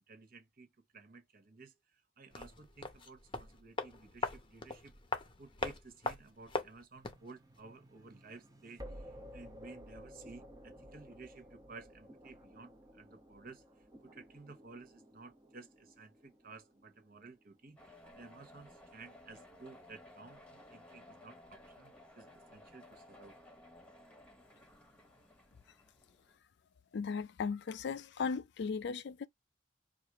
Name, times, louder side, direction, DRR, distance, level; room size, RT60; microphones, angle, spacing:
voice 1, 0.1-0.7 0.9-1.7 2.2-4.9 5.4-13.6 14.0-23.3, right 3 dB, 50° right, 1.0 m, -54 dB
sound 1, 2.3-7.3 7.6-7.7, left 3 dB, 25° left, 0.7 m, -41 dB
sound 2, 7.0-18.0, equal, 20° right, 0.8 m, -54 dB
sound 3, 17.8-26.4, left 1 dB, 5° left, 1.1 m, -57 dB
voice 2, 26.9-29.3, left 5 dB, 60° left, 0.4 m, -37 dB
4.8 x 2.5 x 2.9 m
head